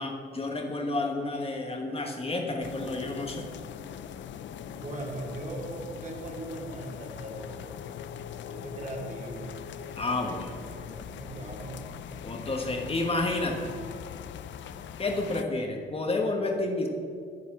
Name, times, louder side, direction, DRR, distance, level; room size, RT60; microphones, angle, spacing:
voice 1, 0.0-3.5 10.0-10.6 12.2-13.7 15.0-16.9, left 2 dB, 30° left, 1 dB, 1.4 m, -30 dB
sound 1, 2.6-15.4, left 9 dB, 70° left, 0.6 m, -41 dB
voice 2, 4.6-7.6 8.5-9.5 10.2-11.8, right 2 dB, 35° right, -1 dB, 3.0 m, -39 dB
9.7 x 8.5 x 7.1 m, 2.3 s
cardioid pair, 90°, 20 cm